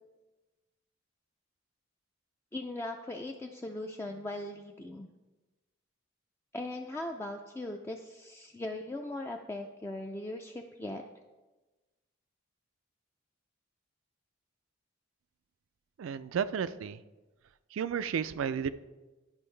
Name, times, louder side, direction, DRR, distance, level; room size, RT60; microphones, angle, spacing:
voice 1, 2.5-5.1 6.5-11.0, left 1 dB, 10° left, 2 dB, 0.3 m, -39 dB
voice 2, 16.0-17.0 17.7-18.7, right 7 dB, 70° right, 15 dB, 0.3 m, -32 dB
10.5 x 5.4 x 3.2 m, 1.2 s
head